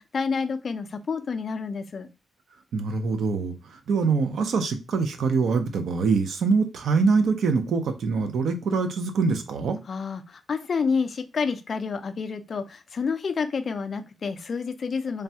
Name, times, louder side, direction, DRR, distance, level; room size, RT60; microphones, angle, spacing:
voice 1, 0.0-2.1 9.9-15.2, left 5 dB, 40° left, 0.3 m, -29 dB
voice 2, 2.7-9.8, right 4 dB, 65° right, 0.5 m, -24 dB
3.2 x 2.3 x 2.7 m
wide cardioid pair, 175°, 0 cm